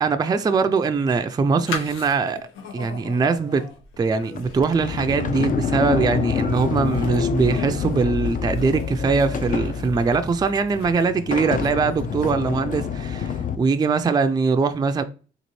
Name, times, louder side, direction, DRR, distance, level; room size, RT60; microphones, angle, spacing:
voice 1, 0.0-2.4 2.7-3.7 4.0-15.0, right 4 dB, 20° right, 0.4 m, -22 dB
sound 1, 0.8-12.5, left 5 dB, 85° left, 0.9 m, -40 dB
Sliding door, 4.3-13.6, left 6 dB, 45° left, 0.5 m, -27 dB
4.0 x 2.5 x 3.1 m
cardioid pair, 90°, 20 cm